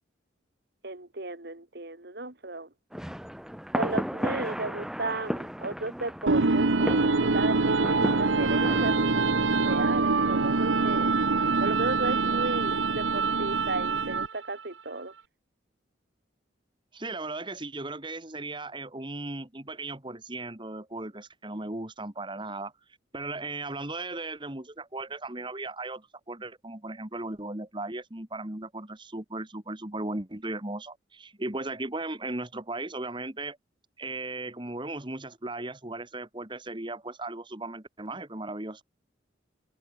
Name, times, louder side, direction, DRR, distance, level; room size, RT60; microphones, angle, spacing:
voice 1, 0.8-2.7 3.8-9.3 9.5-11.1 11.6-15.1, right 2 dB, 60° right, 2.2 m, -34 dB
sound 1, 2.9-9.0, equal, 5° right, 1.4 m, -34 dB
sound 2, 6.3-14.5, right 3 dB, 85° right, 1.1 m, -24 dB
voice 2, 16.9-22.7 23.1-33.6 34.0-38.8, right 2 dB, 25° right, 1.9 m, -37 dB
open air
head